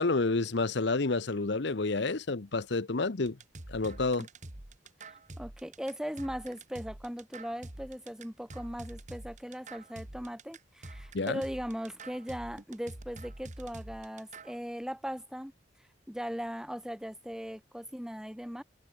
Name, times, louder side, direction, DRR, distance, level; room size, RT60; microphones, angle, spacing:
voice 1, 0.0-3.4 3.7-4.3 11.1-11.4, left 3 dB, 65° left, 0.9 m, -29 dB
sound 1, 3.2-14.6, right 2 dB, 40° right, 1.9 m, -46 dB
voice 2, 5.0-15.5 16.1-18.6, equal, 5° right, 3.2 m, -39 dB
head